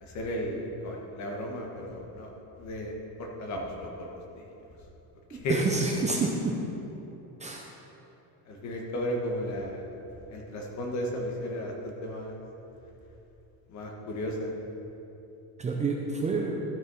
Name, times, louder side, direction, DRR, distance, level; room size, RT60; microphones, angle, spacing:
voice 1, 0.0-2.3 2.6-2.9 3.2-4.5 5.3-5.7 8.5-9.8 10.3-12.3 13.7-14.5, equal, 45° left, 0 dB, 1.6 m, -34 dB
voice 2, 5.3-6.6 7.4-7.6 15.6-16.6, right 3 dB, 20° right, 0 dB, 0.6 m, -28 dB
12.5 x 6.5 x 5.6 m, 3.0 s
cardioid pair, 175°, 39 cm